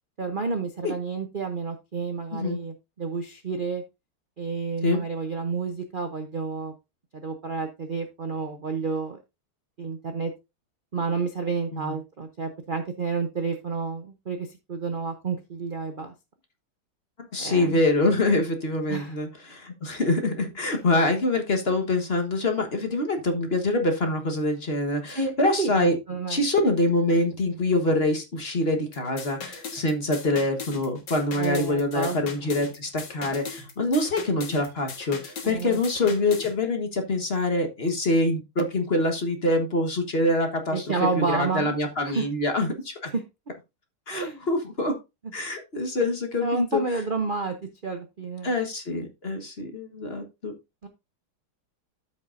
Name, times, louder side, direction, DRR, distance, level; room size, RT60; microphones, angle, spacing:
voice 1, 0.2-3.8 4.4-6.7 7.1-9.2 9.8-10.3 10.9-16.1 17.4-17.8 18.9-19.1 25.1-25.3 25.6-26.4 31.3-32.2 32.4-32.5 35.4-35.8 40.7-41.8 42.0-42.3 43.1-43.2 44.1-44.5 46.4-47.5 47.8-48.5 50.8-50.9, right 4 dB, 70° right, 5 dB, 0.5 m, -30 dB
voice 2, 17.3-26.0 26.3-43.1 44.1-45.0 45.3-46.8 48.4-50.5, left 2 dB, 35° left, 5 dB, 1.3 m, -25 dB
sound 1, 28.9-36.5, left 5 dB, 60° left, 2.1 m, -39 dB
13.5 x 5.4 x 2.6 m, 0.24 s
omnidirectional pair, 2.2 m